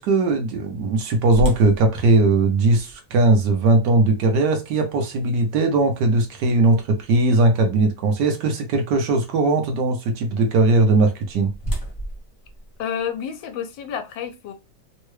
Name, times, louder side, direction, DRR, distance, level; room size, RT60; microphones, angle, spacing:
voice 1, 0.0-11.5, right 2 dB, 70° right, 1.3 m, -19 dB
Fridge door, 1.3-7.3 7.8-7.9 8.5-8.8 10.8-13.5, right 1 dB, 15° left, 0.8 m, -35 dB
voice 2, 12.8-14.5, left 8 dB, 90° left, 1.3 m, -29 dB
3.6 x 2.2 x 3.2 m
omnidirectional pair, 2.0 m